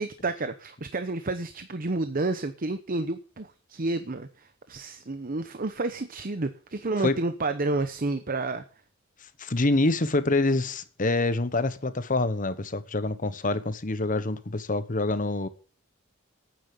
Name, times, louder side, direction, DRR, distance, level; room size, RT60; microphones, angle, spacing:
voice 1, 0.0-8.6, right 2 dB, 45° right, 0.9 m, -30 dB
voice 2, 9.4-15.5, left 2 dB, 40° left, 1.1 m, -26 dB
10.5 x 9.5 x 7.8 m
head